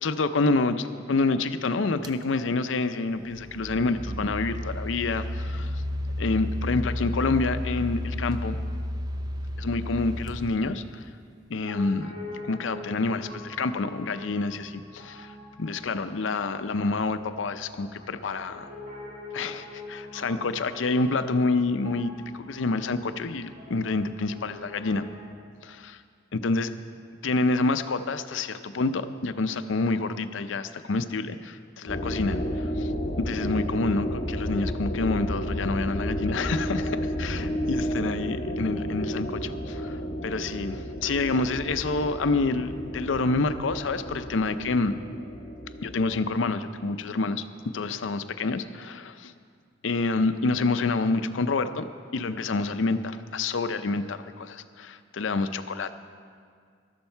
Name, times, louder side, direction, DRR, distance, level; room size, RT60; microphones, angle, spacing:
voice 1, 0.0-5.7 6.2-8.6 9.6-11.1 11.5-12.1 12.4-18.7 19.3-25.0 25.6-26.0 26.3-26.7 27.2-32.9 33.2-44.9 45.8-47.4 47.7-49.3 49.8-51.9 52.1-55.9, left 3 dB, 75° left, 11 dB, 0.6 m, -28 dB
sound 1, 2.0-2.2 3.1-11.2, left 1 dB, 20° right, 0.5 m, -32 dB
Piano, 11.6-25.3, left 2 dB, 45° right, 2.9 m, -44 dB
sound 2, 31.9-46.2, equal, 35° left, 1.6 m, -32 dB
13.0 x 12.5 x 4.5 m, 2.1 s
head